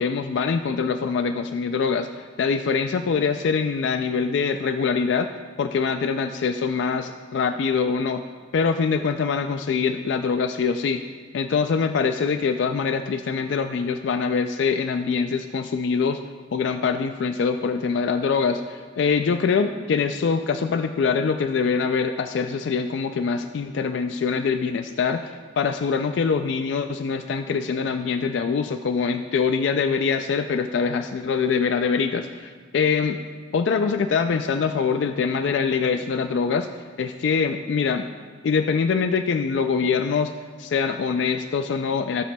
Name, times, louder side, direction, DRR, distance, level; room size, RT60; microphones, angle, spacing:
voice 1, 0.0-5.3 5.6-8.2 8.5-11.0 11.3-16.2 16.5-33.2 33.5-36.7 37.0-38.1 38.4-40.3 40.6-42.2, left 5 dB, 70° left, 7 dB, 0.3 m, -24 dB
14.5 x 7.5 x 2.3 m, 1.5 s
head